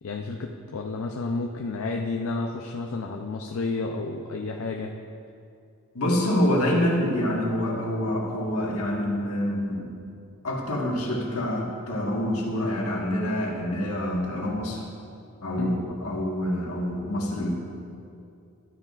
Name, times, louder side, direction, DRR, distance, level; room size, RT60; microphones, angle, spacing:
voice 1, 0.0-4.9 15.6-15.8, left 3 dB, 70° left, 1 dB, 0.5 m, -31 dB
voice 2, 5.9-9.8 10.4-14.8 15.4-17.6, left 1 dB, 85° left, -2 dB, 1.4 m, -26 dB
11.5 x 9.3 x 2.4 m, 2.4 s
head